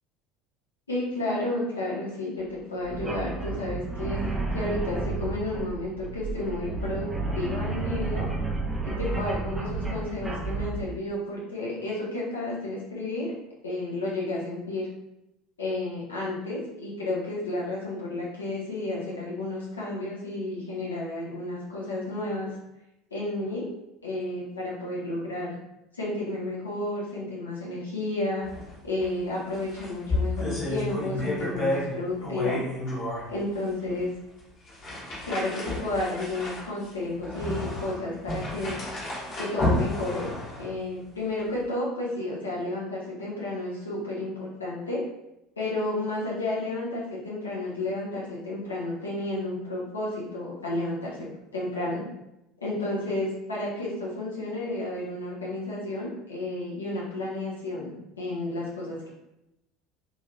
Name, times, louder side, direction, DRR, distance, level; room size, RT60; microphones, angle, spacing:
voice 1, 0.9-7.1 7.3-8.3 8.8-13.3 13.6-14.9 15.6-22.5 23.1-23.6 24.0-25.5 25.9-28.5 28.8-32.6 33.3-34.1 35.3-38.8 39.4-40.3 40.6-45.0 45.6-51.3 51.5-52.0 52.6-59.1, left 2 dB, 85° left, -6 dB, 1.0 m, -31 dB
sound 1, 2.9-10.8, right 3 dB, 15° right, 0.5 m, -31 dB
sound 2, 28.4-28.7 29.0-29.1 29.5-31.9 32.2-33.2 33.9-34.0 34.7-40.7, left 2 dB, 50° left, 1.3 m, -31 dB
3.0 x 2.8 x 2.4 m, 0.88 s
figure-of-eight pair, 70°, 0 cm